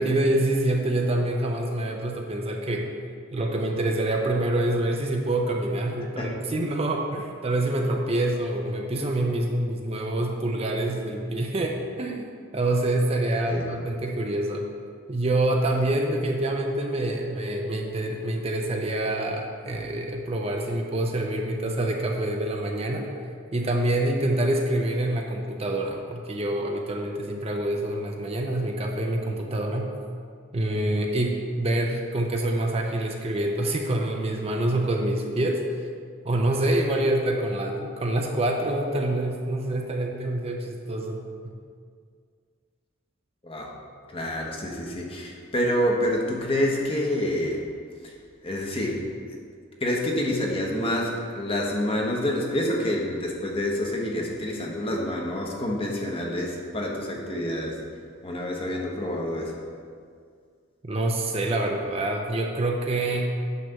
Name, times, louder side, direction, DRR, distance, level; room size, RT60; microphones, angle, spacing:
voice 1, 0.0-2.9 3.3-14.7 15.1-23.1 23.5-29.9 30.5-35.6 36.2-41.5 60.8-63.4, right 1 dB, 30° right, 1 dB, 0.6 m, -26 dB
voice 2, 43.4-43.7 44.1-47.6 48.0-48.1 48.4-49.0 49.8-57.8 58.2-59.5, left 1 dB, 30° left, -1 dB, 1.0 m, -27 dB
9.3 x 3.3 x 6.7 m, 2.1 s
head